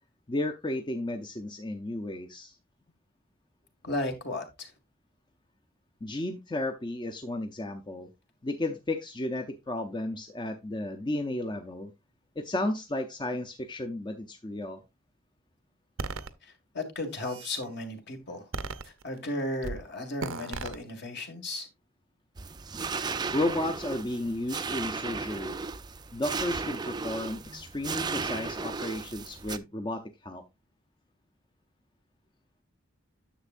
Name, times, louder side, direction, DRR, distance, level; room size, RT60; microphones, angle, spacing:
voice 1, 0.3-2.6 6.0-8.1 8.4-11.9 12.4-14.8 23.3-25.7 26.1-30.4, left 1 dB, 20° left, 0.6 m, -33 dB
voice 2, 3.8-4.7 16.4-18.4 18.8-21.7, left 1 dB, 55° left, 2.0 m, -35 dB
sound 1, 16.0-16.3 17.0-17.6 18.5-19.3 19.6-19.8 20.2-20.8, right 4 dB, 75° right, 0.7 m, -36 dB
sound 2, 22.4-29.6, right 4 dB, 20° right, 0.4 m, -35 dB
10.0 x 7.2 x 2.5 m
head